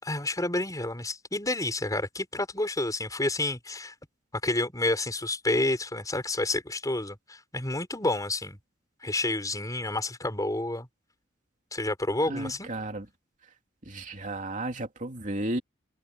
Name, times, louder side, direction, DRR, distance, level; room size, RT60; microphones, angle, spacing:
voice 1, 0.0-3.9 4.4-8.6 9.0-10.9 11.7-12.7, left 2 dB, 20° left, 5.4 m, -29 dB
voice 2, 12.3-13.0 13.9-15.6, right 1 dB, 40° right, 2.8 m, -33 dB
head